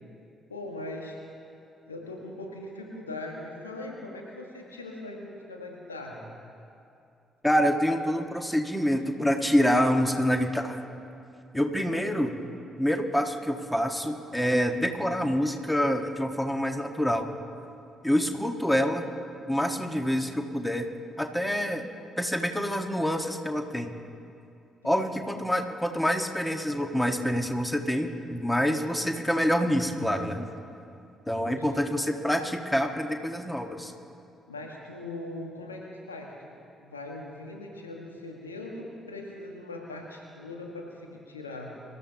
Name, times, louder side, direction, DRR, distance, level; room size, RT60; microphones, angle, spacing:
voice 1, 0.5-1.2 1.9-6.2 11.9-12.3 24.8-25.1 31.4-31.8 34.5-36.3 36.8-41.8, left 2 dB, 85° left, 0 dB, 1.6 m, -40 dB
voice 2, 7.4-10.8 11.5-12.3 12.8-17.3 18.0-19.1 19.5-20.9 21.2-21.9 22.2-23.9 24.8-30.5 31.3-33.9, equal, 5° left, 5 dB, 1.6 m, -26 dB
25.5 x 14.0 x 3.0 m, 2.6 s
figure-of-eight pair, 45°, 0 cm